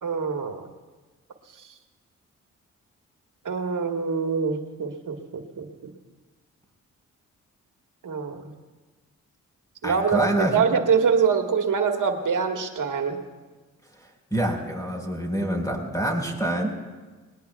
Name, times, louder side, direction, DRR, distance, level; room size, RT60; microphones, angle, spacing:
voice 1, 0.0-0.7 3.4-5.9 8.0-8.5 9.8-13.2, right 6 dB, 60° right, 4 dB, 1.6 m, -25 dB
voice 2, 9.8-10.5 14.3-16.7, right 1 dB, 10° left, 2 dB, 4.4 m, -26 dB
20.5 x 19.0 x 2.3 m, 1.3 s
supercardioid pair, 40°, 35 cm